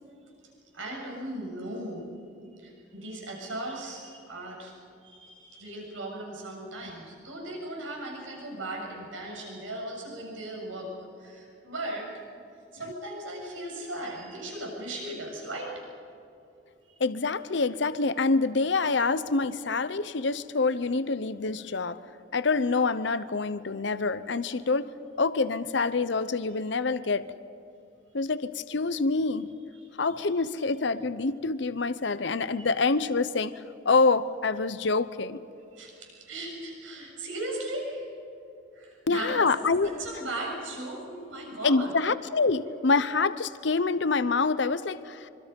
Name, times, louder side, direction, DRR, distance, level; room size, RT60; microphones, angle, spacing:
voice 1, 0.7-2.1 2.6-4.7 5.0-12.2 12.7-15.7 30.0-30.3 30.6-30.7 35.7-38.1 38.7-39.5 39.8-41.9, right 1 dB, 85° right, -1 dB, 7.1 m, -37 dB
voice 2, 17.0-22.0 22.3-24.9 25.2-27.3 28.1-29.5 30.0-35.4 39.1-39.9 41.6-45.3, left 3 dB, 65° left, 14 dB, 0.8 m, -26 dB
26.0 x 25.0 x 5.4 m, 2.7 s
head